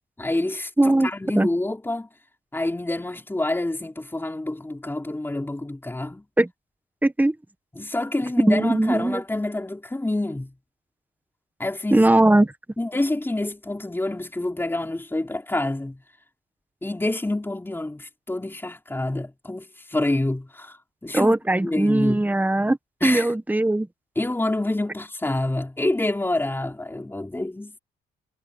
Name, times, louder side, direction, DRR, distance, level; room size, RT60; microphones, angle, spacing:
voice 1, 0.0-2.1 2.5-6.2 7.7-10.5 11.6-12.1 12.8-16.0 16.8-21.3 21.6-22.2 23.0-23.3 24.2-27.8, left 2 dB, 10° left, 4.0 m, -27 dB
voice 2, 0.8-1.1 1.3-1.5 6.4-6.5 7.0-7.3 8.5-9.2 11.9-12.5 21.1-23.9, right 1 dB, 10° right, 1.5 m, -19 dB
cardioid pair, 90°, 20 cm